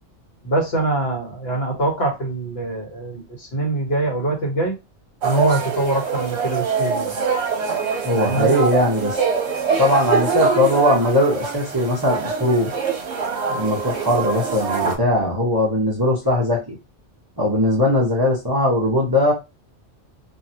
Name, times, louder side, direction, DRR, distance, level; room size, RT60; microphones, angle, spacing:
voice 1, 0.4-4.8 5.2-7.1 8.1-8.5, right 2 dB, 55° left, 0 dB, 1.4 m, -23 dB
sound 1, 5.2-15.0, right 5 dB, 70° right, 1.1 m, -24 dB
voice 2, 8.0-9.2 9.8-12.7 13.5-16.8 17.4-19.3, left 1 dB, 20° right, -2 dB, 0.8 m, -19 dB
2.9 x 2.7 x 2.7 m, 0.25 s
omnidirectional pair, 1.2 m